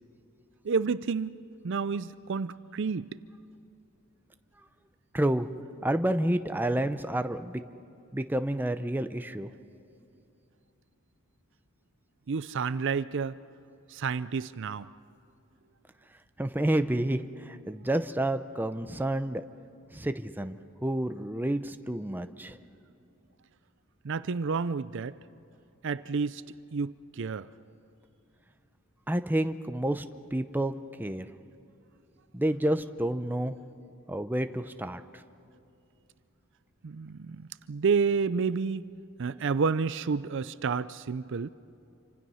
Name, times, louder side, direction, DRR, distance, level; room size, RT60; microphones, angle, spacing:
voice 1, 0.6-1.4 1.6-3.1 12.3-13.4 13.9-14.9 24.0-25.2 25.8-27.5 36.8-38.9 39.2-41.5, right 5 dB, 55° right, 0.5 m, -30 dB
voice 2, 5.1-5.5 5.8-7.6 8.1-9.5 16.4-19.4 19.9-22.6 29.1-30.0 30.3-30.7 31.0-31.3 32.3-33.5 34.1-35.0, right 1 dB, 10° right, 0.6 m, -29 dB
27.5 x 25.5 x 5.7 m
head